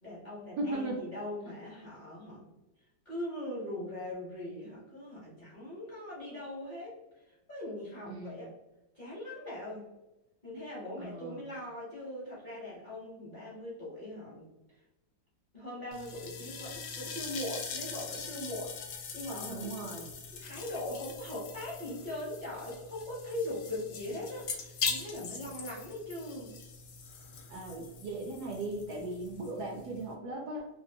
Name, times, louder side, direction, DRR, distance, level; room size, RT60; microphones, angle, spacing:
voice 1, 0.0-2.4 3.0-8.5 8.9-9.9 10.4-14.8 15.5-19.7 20.3-26.6, left 1 dB, 40° left, -7 dB, 0.7 m, -41 dB
voice 2, 0.6-1.0 8.1-8.5 11.0-11.4 19.5-20.1 27.5-30.7, right 2 dB, 70° right, -1 dB, 1.0 m, -37 dB
sound 1, 15.9-30.1, left 5 dB, 80° left, 1.2 m, -42 dB
3.0 x 2.4 x 2.6 m, 0.99 s
omnidirectional pair, 2.0 m